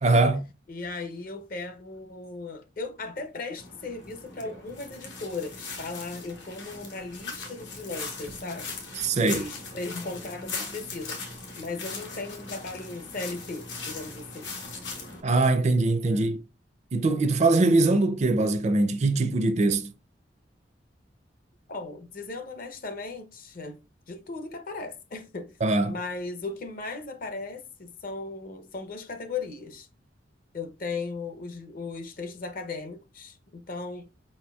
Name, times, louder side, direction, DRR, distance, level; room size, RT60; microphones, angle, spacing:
voice 1, 0.0-0.5 9.0-9.4 15.2-16.4 16.9-19.9 25.6-25.9, right 2 dB, 40° right, 0.4 m, -22 dB
voice 2, 0.7-8.8 9.2-11.2 11.6-14.5 16.1-16.3 21.7-23.8 24.1-25.6 25.8-29.9 30.5-34.1, left 3 dB, 50° left, 0.6 m, -37 dB
sound 1, 3.6-15.2, left 4 dB, 85° left, 1.1 m, -39 dB
4.7 x 4.3 x 2.3 m
head